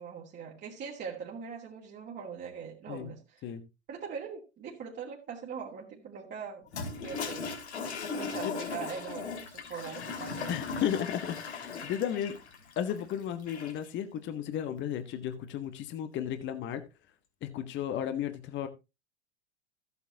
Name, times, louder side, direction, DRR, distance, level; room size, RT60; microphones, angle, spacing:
voice 1, 0.0-3.5 3.9-6.6 7.0-7.5 8.1-10.6, right 7 dB, 30° right, -3 dB, 2.4 m, -41 dB
Toilet flush, 6.7-13.9, left 5 dB, 75° left, 3.1 m, -38 dB
voice 2, 10.5-12.4 12.8-16.8 17.4-18.7, left 9 dB, 35° left, 9 dB, 1.3 m, -34 dB
14.5 x 8.3 x 2.8 m, 0.26 s
figure-of-eight pair, 85°, 34 cm